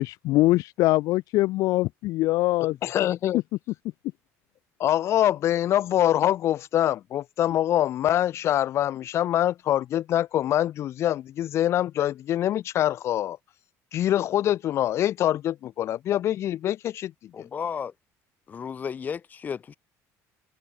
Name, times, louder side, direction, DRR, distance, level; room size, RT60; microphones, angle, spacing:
voice 1, 0.0-2.7, left 18 dB, 70° left, 0.9 m, -23 dB
voice 2, 2.8-3.4 4.8-13.4 13.9-17.5, left 12 dB, 45° left, 1.4 m, -24 dB
voice 3, 17.3-17.9 18.5-19.7, left 7 dB, 25° left, 3.0 m, -33 dB
cardioid pair, 155°, 6 cm